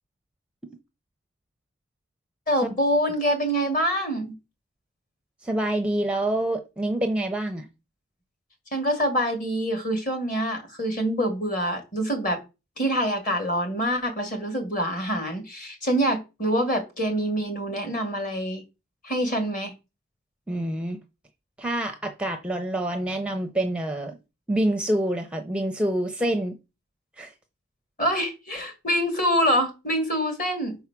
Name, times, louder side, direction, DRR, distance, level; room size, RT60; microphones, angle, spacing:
voice 1, 2.5-4.3 8.7-12.4 12.8-18.6 19.0-19.7 28.0-30.8, equal, 40° left, 2.1 m, -25 dB
voice 2, 5.4-7.7 20.5-21.0 21.6-24.2 24.5-26.5 27.2-27.3, right 1 dB, 5° right, 0.6 m, -26 dB
5.4 x 4.7 x 5.9 m
head